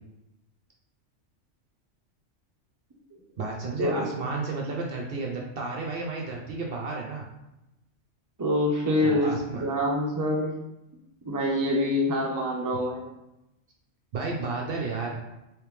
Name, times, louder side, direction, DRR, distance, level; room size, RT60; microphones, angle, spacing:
voice 1, 3.4-7.2 9.0-9.7 12.7-12.8 14.1-15.2, right 3 dB, 60° right, -1 dB, 0.7 m, -32 dB
voice 2, 8.4-9.3 9.6-10.6 11.2-13.0, left 1 dB, 25° right, -2 dB, 0.5 m, -25 dB
3.3 x 3.2 x 3.2 m, 0.90 s
omnidirectional pair, 1.3 m